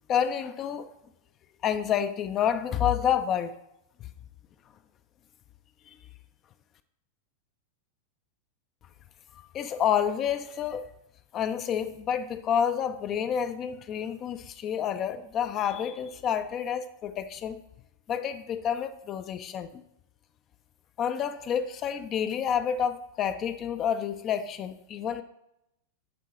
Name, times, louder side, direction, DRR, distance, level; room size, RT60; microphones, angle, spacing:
voice 1, 0.1-0.9 1.6-3.5 9.5-10.8 11.3-17.6 18.1-19.8 21.0-25.2, left 8 dB, 30° left, 10 dB, 0.4 m, -29 dB
10.5 x 3.7 x 4.2 m, 0.85 s
figure-of-eight pair, 90°, 0 cm